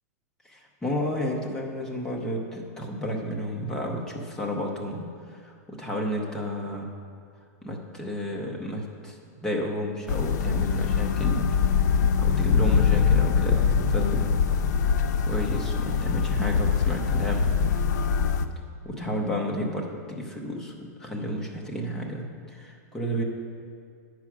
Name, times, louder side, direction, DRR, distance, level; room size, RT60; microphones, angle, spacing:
voice 1, 0.4-5.0 5.3-6.9 7.6-11.7 12.2-14.3 15.2-17.5 18.8-23.2, equal, 5° left, -1 dB, 0.7 m, -32 dB
sound 1, 10.1-18.5, left 6 dB, 80° left, 0.5 m, -23 dB
8.9 x 4.8 x 6.0 m, 2.2 s
supercardioid pair, 175°, 9 cm